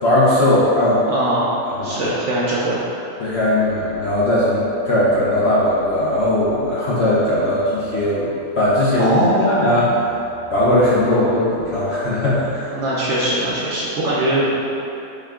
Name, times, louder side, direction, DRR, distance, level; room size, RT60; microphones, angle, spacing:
voice 1, 0.0-1.0 1.6-2.0 3.2-10.0 10.5-12.7, left 1 dB, 55° left, -8 dB, 0.8 m, -18 dB
voice 2, 1.1-1.5 1.8-2.8 9.0-9.8 12.7-14.6, right 1 dB, 60° right, -7 dB, 0.8 m, -21 dB
5.6 x 2.3 x 3.5 m, 2.9 s
omnidirectional pair, 1.7 m